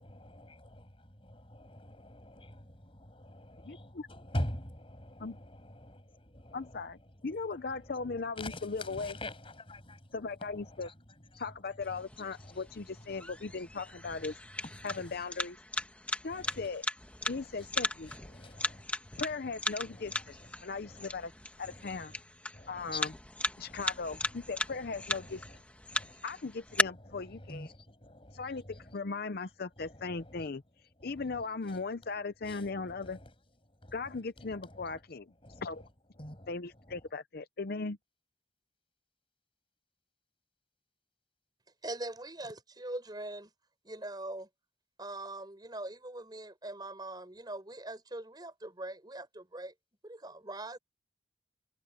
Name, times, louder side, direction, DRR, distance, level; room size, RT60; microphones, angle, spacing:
voice 1, 0.0-6.8 7.2-10.9 11.3-11.4 11.9-12.0 12.4-12.6 13.2-13.3 13.5-13.6 14.0-14.4 14.6-15.2 16.3-16.7 17.3-17.5 18.1-19.2 19.8-20.5 20.8-21.1 21.6-22.2 22.5-23.1 23.7-23.8 24.2-25.6 25.9-26.2 26.7-29.0 29.8-30.5 31.0-31.4 31.7-31.8 32.4-33.3 33.7-35.0 35.4-35.9 36.2-36.5 36.9-37.0, left 1 dB, 30° left, 7.3 m, -46 dB
voice 2, 3.7-4.1 5.2-5.4 6.5-9.2 10.1-10.9 11.4-14.4 14.8-15.6 16.2-16.8 17.3-18.1 19.2-20.4 20.6-21.3 21.6-22.1 22.7-23.1 23.6-25.4 26.2-27.7 28.3-30.6 31.0-33.2 33.9-35.3 35.6-35.8 36.5-38.0, left 4 dB, 55° left, 0.7 m, -38 dB
sound 1, 11.8-26.8, left 1 dB, 5° left, 1.8 m, -38 dB
voice 3, 41.8-43.5 43.8-44.5 45.0-49.7 50.0-50.8, right 2 dB, 25° right, 5.6 m, -42 dB
head